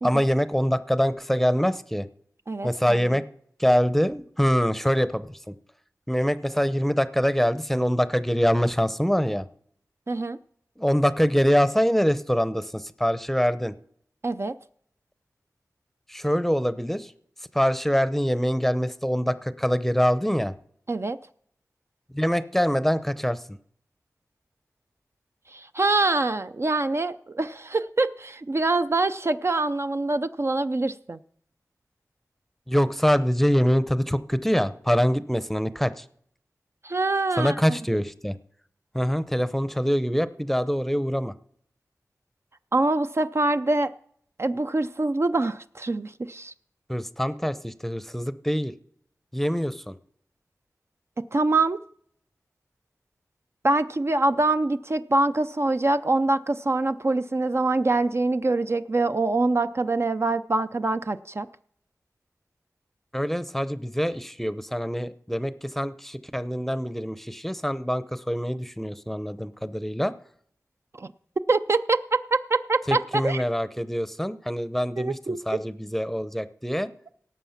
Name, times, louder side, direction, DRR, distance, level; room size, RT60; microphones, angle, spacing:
voice 1, 0.0-2.1 2.6-3.2 3.6-5.5 6.1-9.4 10.8-13.7 16.1-17.1 17.5-20.5 22.1-23.6 32.7-36.0 37.4-38.4 38.9-41.3 46.9-48.7 49.3-49.9 63.1-70.1 72.9-75.2 75.5-76.9, equal, 5° left, 13 dB, 0.7 m, -24 dB
voice 2, 2.5-3.0 10.1-10.4 14.2-14.5 20.9-21.2 25.5-31.2 36.8-37.8 42.7-43.9 44.4-46.5 51.3-51.8 53.6-61.5 70.9-71.1 71.5-73.4 75.0-75.6, right 2 dB, 45° right, 10 dB, 0.5 m, -24 dB
17.0 x 7.2 x 5.7 m, 0.65 s
wide cardioid pair, 65°, 6 cm